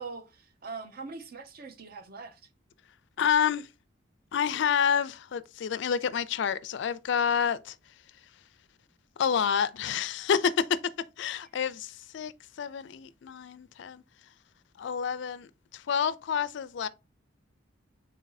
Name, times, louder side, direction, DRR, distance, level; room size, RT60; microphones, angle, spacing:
voice 1, 0.0-2.4, right 4 dB, 50° right, 0.6 m, -42 dB
voice 2, 3.2-3.7 4.3-7.8 9.2-14.0 14.8-16.9, left 7 dB, 60° left, 0.3 m, -29 dB
3.9 x 2.6 x 3.9 m
head